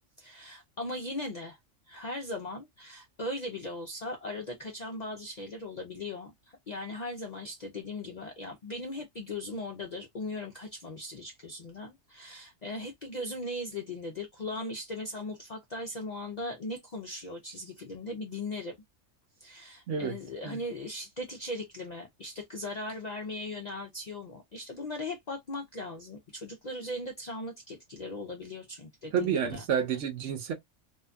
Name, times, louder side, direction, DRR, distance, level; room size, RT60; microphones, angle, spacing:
voice 1, 0.2-1.6 1.9-6.3 6.7-18.7 19.4-29.6, left 2 dB, 55° left, 0.4 m, -38 dB
voice 2, 29.1-30.5, right 7 dB, 75° right, 1.1 m, -29 dB
2.7 x 2.5 x 2.2 m
omnidirectional pair, 1.3 m